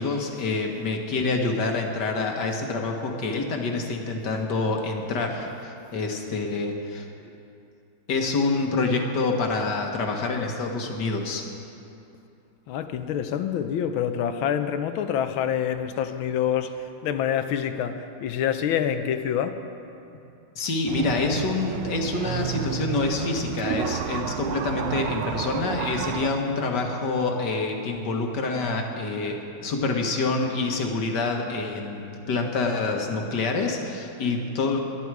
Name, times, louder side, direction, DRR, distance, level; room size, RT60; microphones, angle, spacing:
voice 1, 0.0-7.1 8.1-11.5 20.6-34.8, left 3 dB, 55° left, 2 dB, 1.8 m, -27 dB
voice 2, 12.7-19.6, left 9 dB, 75° left, 9 dB, 1.5 m, -26 dB
sound 1, 20.9-26.3, right 9 dB, 85° right, 1.5 m, -31 dB
22.5 x 9.9 x 4.7 m, 2.7 s
omnidirectional pair, 2.3 m